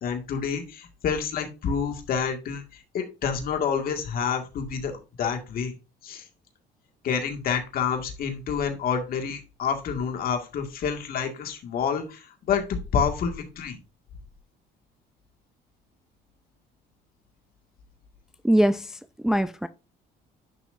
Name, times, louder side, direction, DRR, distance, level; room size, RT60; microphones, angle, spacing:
voice 1, 0.0-4.9 5.2-5.7 6.0-6.2 7.0-12.6 12.9-13.8, left 6 dB, 60° left, 2.1 m, -28 dB
voice 2, 18.4-19.0 19.2-19.7, equal, 5° right, 0.4 m, -22 dB
10.5 x 6.1 x 2.6 m
cardioid pair, 110°, 17 cm